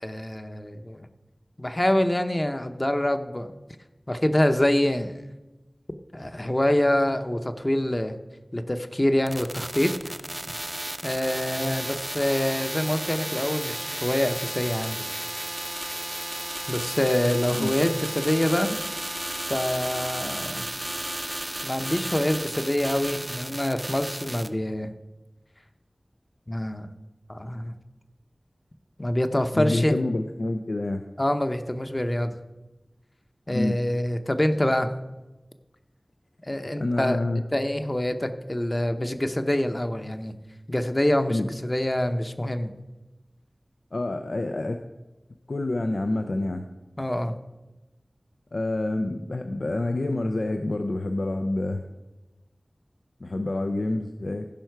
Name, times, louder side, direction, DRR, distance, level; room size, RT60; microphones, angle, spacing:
voice 1, 0.0-1.1 1.6-3.5 4.1-5.2 6.1-8.1 8.5-10.1 11.0-15.0 16.7-18.8 19.5-20.7 21.6-24.9 26.5-26.9 27.3-27.7 29.0-29.9 31.2-32.4 33.5-34.9 36.4-37.2 37.5-40.3 40.7-42.7 47.0-47.4, left 1 dB, 30° left, 7 dB, 0.8 m, -25 dB
sound 1, 9.3-24.5, right 1 dB, 30° right, 0.6 m, -33 dB
voice 2, 29.5-31.0 33.5-33.8 36.8-37.4 41.3-41.5 43.9-44.8 45.5-46.7 48.5-51.9 53.2-54.5, left 2 dB, 80° left, 6 dB, 0.5 m, -27 dB
15.5 x 5.6 x 4.6 m, 1.1 s
wide cardioid pair, 55°, 0 cm